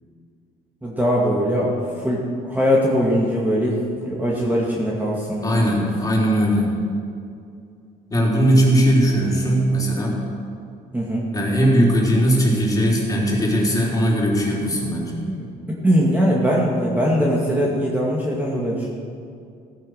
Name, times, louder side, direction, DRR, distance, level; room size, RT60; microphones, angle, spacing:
voice 1, 0.8-5.6 10.9-11.3 15.3-15.5 15.8-18.9, equal, 10° right, -4 dB, 2.1 m, -21 dB
voice 2, 5.4-6.7 8.1-10.2 11.3-15.2, equal, 20° left, -3 dB, 3.9 m, -19 dB
15.5 x 9.7 x 6.6 m, 2.4 s
cardioid pair, 110°, 17 cm